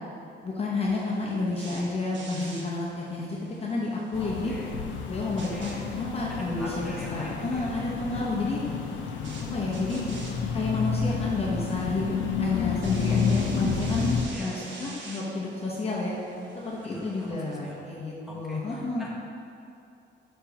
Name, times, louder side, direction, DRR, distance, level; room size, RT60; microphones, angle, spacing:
voice 1, 0.4-4.5 5.1-8.6 9.5-10.0 10.5-16.2 16.5-19.1, left 2 dB, 30° left, -5 dB, 0.8 m, -30 dB
sound 1, 0.9-17.3, right 2 dB, 75° right, 0.9 m, -47 dB
sound 2, 4.1-14.3, left 6 dB, 90° left, 0.5 m, -30 dB
voice 2, 4.2-4.8 5.5-5.9 6.3-7.7 12.5-12.7 14.3-14.8 16.9-17.8 18.2-19.1, equal, ahead, -6 dB, 1.1 m, -43 dB
5.2 x 4.4 x 5.5 m, 2.6 s
wide cardioid pair, 140°, 19 cm